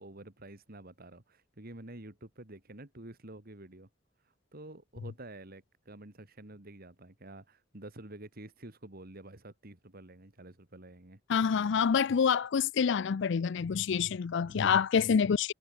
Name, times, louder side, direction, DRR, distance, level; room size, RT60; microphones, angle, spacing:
voice 1, 0.0-3.9 4.2-11.2 14.5-14.8, right 1 dB, 50° right, 2.6 m, -49 dB
voice 2, 11.3-15.5, left 6 dB, 65° left, 0.4 m, -27 dB
head